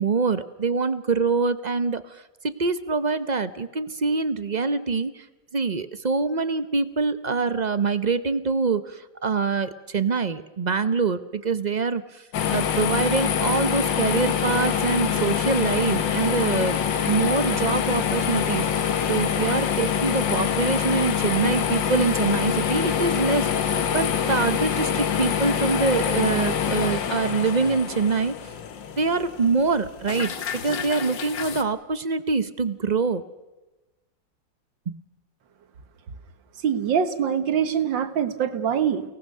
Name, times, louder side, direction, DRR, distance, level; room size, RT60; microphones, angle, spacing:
voice 1, 0.0-5.2 5.5-12.2 12.5-16.8 17.1-28.3 29.0-30.3 30.6-33.2 34.9-35.0, right 4 dB, 45° right, 12 dB, 0.5 m, -25 dB
sound 1, 12.3-31.6, left 8 dB, 80° left, 2.0 m, -25 dB
voice 2, 36.6-39.0, right 8 dB, 90° right, 10 dB, 2.1 m, -24 dB
30.0 x 18.5 x 6.7 m, 1.1 s
omnidirectional pair, 2.0 m